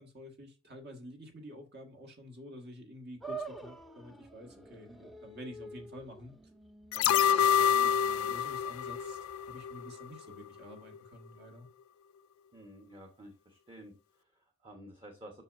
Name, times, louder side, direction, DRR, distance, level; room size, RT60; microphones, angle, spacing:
voice 1, 0.0-6.3 6.9-9.2 9.5-11.7, equal, 55° right, 1.7 m, -49 dB
sound 1, 3.2-9.7, right 3 dB, ahead, 0.5 m, -48 dB
sound 2, 6.9-10.1 10.4-10.5, left 8 dB, 85° left, 0.3 m, -27 dB
voice 2, 12.5-15.4, right 1 dB, 25° right, 1.1 m, -52 dB
7.3 x 5.9 x 2.5 m
head